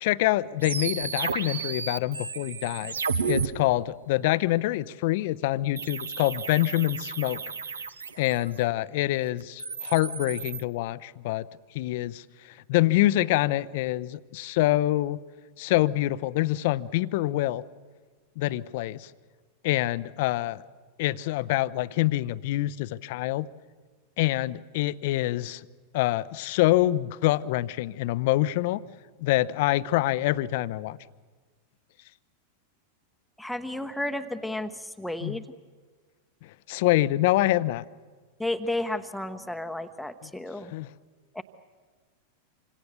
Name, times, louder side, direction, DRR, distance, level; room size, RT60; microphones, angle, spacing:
voice 1, 0.0-2.9 3.3-7.4 8.2-11.5 11.7-12.2 12.7-15.2 15.6-17.6 18.4-19.1 19.6-20.6 21.0-23.5 24.2-25.6 25.9-28.8 29.2-31.0 35.2-35.4 36.7-37.8 40.7-40.9, left 16 dB, 50° left, 0.7 m, -25 dB
sound 1, 0.6-3.5 5.8-8.6 9.4-10.6, right 5 dB, 75° right, 1.1 m, -32 dB
voice 2, 33.4-35.4 38.4-40.7 41.3-41.4, left 1 dB, ahead, 1.0 m, -32 dB
27.5 x 25.5 x 6.9 m
figure-of-eight pair, 90°, 0 cm